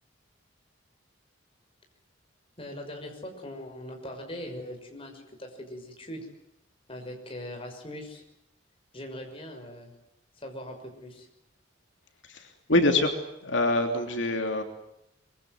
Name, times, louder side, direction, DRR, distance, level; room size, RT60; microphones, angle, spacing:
voice 1, 2.6-6.3 6.9-8.2 8.9-9.9 10.4-11.3, left 1 dB, 30° left, 3 dB, 6.0 m, -41 dB
voice 2, 12.2-14.6, left 2 dB, 65° left, 5 dB, 3.1 m, -25 dB
25.0 x 23.5 x 7.9 m, 0.83 s
head